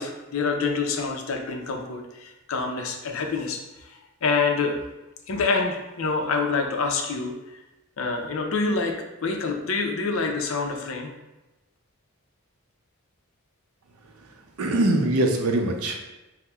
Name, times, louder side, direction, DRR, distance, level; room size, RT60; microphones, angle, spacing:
voice 1, 0.0-4.7 5.3-7.6 8.0-8.9 9.2-11.1, left 4 dB, 65° left, 3 dB, 0.5 m, -27 dB
voice 2, 14.6-16.0, right 1 dB, 85° right, 3 dB, 0.5 m, -22 dB
5.5 x 2.0 x 2.3 m, 1.0 s
head